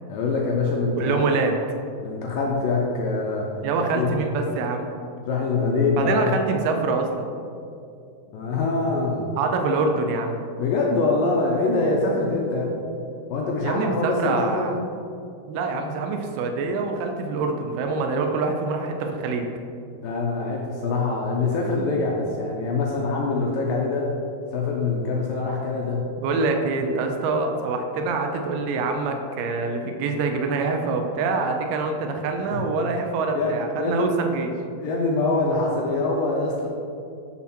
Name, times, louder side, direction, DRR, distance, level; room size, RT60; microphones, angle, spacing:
voice 1, 0.1-1.3 2.0-3.5 4.0-4.1 5.3-6.3 8.3-9.3 10.6-12.7 13.3-14.7 20.0-24.1 24.5-26.0 32.5-32.6 33.4-34.1 34.8-36.7, left 3 dB, 75° left, -2 dB, 2.1 m, -24 dB
voice 2, 1.0-1.6 3.6-4.9 6.0-7.3 9.4-10.4 13.6-14.7 15.5-19.5 26.2-34.5, right 3 dB, 80° right, 4 dB, 2.5 m, -25 dB
7.2 x 6.0 x 4.3 m, 2.5 s
omnidirectional pair, 4.6 m